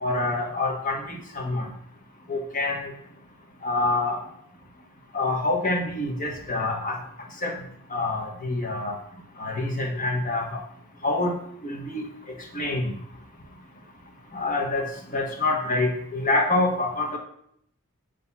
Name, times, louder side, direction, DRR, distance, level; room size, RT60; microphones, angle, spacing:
voice 1, 0.0-1.7 2.3-2.8 3.6-4.2 5.1-6.9 7.4-7.5 7.9-8.9 9.4-10.4 11.0-11.3 11.6-12.0 12.5-12.9 14.3-14.8 15.1-17.2, left 2 dB, 40° left, 1 dB, 1.4 m, -26 dB
8.3 x 3.4 x 5.6 m, 0.71 s
head